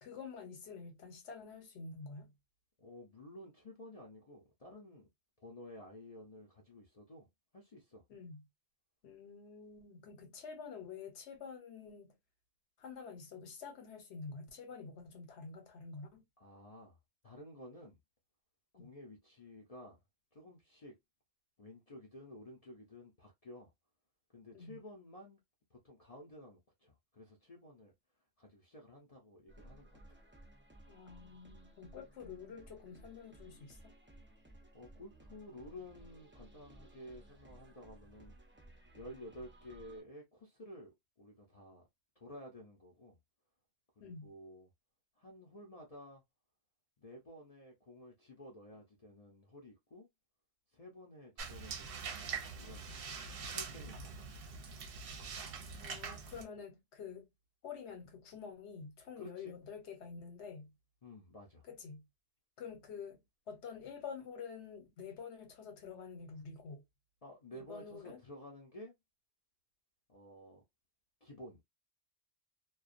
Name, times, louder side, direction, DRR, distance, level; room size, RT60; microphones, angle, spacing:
voice 1, 0.0-2.3 8.1-8.5 9.0-12.1 12.8-16.2 18.8-18.9 24.5-24.8 30.9-33.9 44.0-44.3 55.8-57.3 57.6-60.7 61.7-62.1 62.6-63.2 63.5-66.8 67.5-68.2, left 5 dB, 75° left, 1.1 m, -48 dB
voice 2, 2.8-5.1 5.4-8.0 16.4-17.0 17.2-18.0 18.7-20.0 20.3-21.0 21.6-23.7 24.3-25.4 25.7-27.9 28.4-30.2 34.7-38.4 38.9-41.8 42.2-43.2 44.0-44.7 45.2-46.2 47.0-50.1 50.7-52.9 53.5-54.4 59.2-59.6 61.0-61.7 67.2-68.9 70.1-70.6 71.2-71.6, left 1 dB, 40° left, 0.6 m, -53 dB
sound 1, 29.5-40.0, right 1 dB, 15° right, 0.4 m, -58 dB
sound 2, 51.4-56.4, right 5 dB, 60° right, 0.8 m, -44 dB
2.2 x 2.2 x 2.4 m
omnidirectional pair, 1.2 m